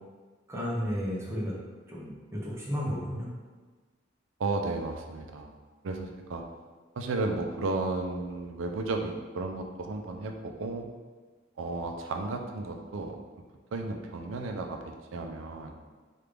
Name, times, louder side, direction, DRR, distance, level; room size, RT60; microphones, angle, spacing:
voice 1, 0.5-1.6 1.9-3.3, equal, 15° right, -5 dB, 0.6 m, -33 dB
voice 2, 4.4-5.5 5.8-6.4 7.0-10.9 11.6-13.2 13.7-15.7, right 3 dB, 75° right, 4 dB, 0.4 m, -33 dB
3.2 x 2.4 x 3.3 m, 1.4 s
head